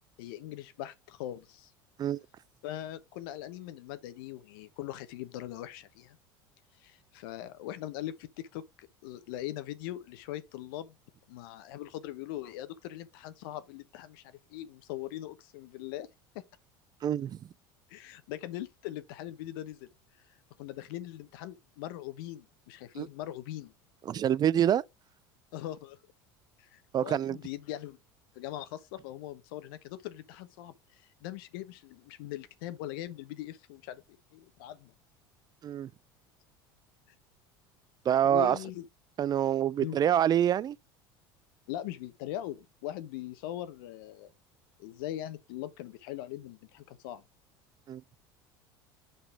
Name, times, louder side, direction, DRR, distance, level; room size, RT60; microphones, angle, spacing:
voice 1, 0.2-1.7 2.6-6.2 6.8-11.0 11.3-16.1 17.9-19.9 20.6-23.7 25.5-26.0 26.6-28.0 28.3-34.0 34.3-34.9 38.2-38.8 39.8-40.0 41.7-44.3 44.8-47.2, left 13 dB, 75° left, 0.9 m, -41 dB
voice 2, 17.0-17.4 23.0-23.1 24.1-24.8 26.9-27.4 35.6-35.9 38.1-38.6 39.2-40.8 47.9-48.0, right 10 dB, 35° right, 0.4 m, -26 dB
5.7 x 4.0 x 4.8 m
hypercardioid pair, 90°, 12 cm